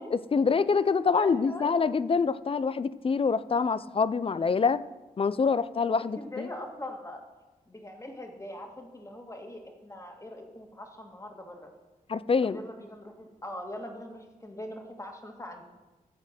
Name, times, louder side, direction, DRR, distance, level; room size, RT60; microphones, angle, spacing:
voice 1, 0.1-4.8 5.2-6.5 12.1-12.6, left 5 dB, 40° left, 17 dB, 0.4 m, -26 dB
voice 2, 1.1-1.7 4.3-4.4 6.2-7.2 7.7-11.7 12.4-15.6, left 1 dB, 20° left, 3 dB, 2.0 m, -42 dB
13.0 x 4.5 x 7.5 m, 1.2 s
cardioid pair, 55°, 15 cm